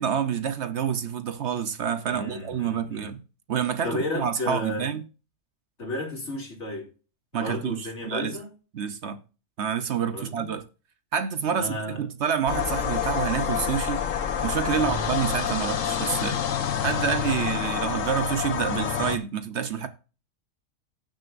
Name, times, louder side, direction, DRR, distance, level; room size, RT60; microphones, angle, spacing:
voice 1, 0.0-3.2 3.5-5.0 7.3-8.4 8.7-9.2 9.6-10.6 11.1-14.0 14.4-16.4 16.8-19.9, right 7 dB, 60° right, 1.0 m, -28 dB
voice 2, 2.0-3.1 3.8-4.9 5.8-6.9 7.3-8.5 10.1-10.5 11.5-12.0 14.7-15.1, left 2 dB, 55° left, 2.9 m, -33 dB
sound 1, 12.5-19.2, left 8 dB, 75° left, 1.3 m, -28 dB
17.0 x 6.4 x 2.5 m
omnidirectional pair, 1.4 m